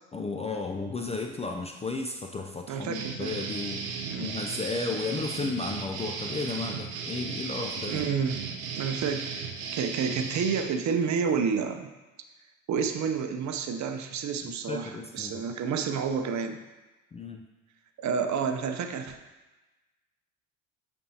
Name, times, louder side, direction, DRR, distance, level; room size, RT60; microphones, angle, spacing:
voice 1, 0.1-3.9 4.2-8.0 14.4-15.5 17.1-17.5, left 3 dB, 15° left, 3 dB, 0.4 m, -34 dB
voice 2, 2.7-3.5 4.0-4.3 7.8-8.4 8.8-11.9 12.7-16.6 18.0-19.2, right 6 dB, 45° right, 6 dB, 0.7 m, -30 dB
sound 1, 2.9-10.7, right 5 dB, 80° right, 0.9 m, -36 dB
8.2 x 4.4 x 2.8 m, 1.1 s
hypercardioid pair, 70°, 40 cm